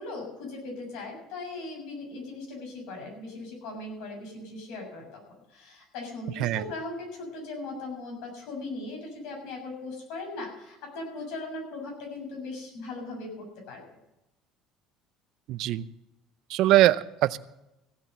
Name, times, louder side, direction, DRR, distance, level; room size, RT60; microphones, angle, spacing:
voice 1, 0.0-5.2 5.5-13.8, left 2 dB, 75° left, 1 dB, 7.1 m, -39 dB
voice 2, 15.5-15.8 16.5-17.4, right 14 dB, 55° right, 16 dB, 0.5 m, -22 dB
16.0 x 8.8 x 6.8 m, 0.93 s
cardioid pair, 165°, 0 cm